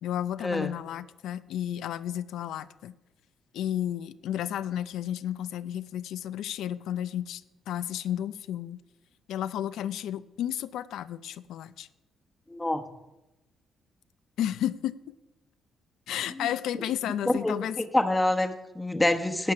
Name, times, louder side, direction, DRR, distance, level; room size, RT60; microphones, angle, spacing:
voice 1, 0.0-2.9 3.5-7.4 7.7-8.8 9.3-11.9 14.4-15.1 16.1-17.8, left 11 dB, 80° left, 14 dB, 0.4 m, -32 dB
voice 2, 12.5-12.8 17.4-19.5, left 1 dB, 10° left, 6 dB, 1.0 m, -26 dB
11.0 x 8.4 x 5.8 m, 1.0 s
cardioid pair, 90°, 0 cm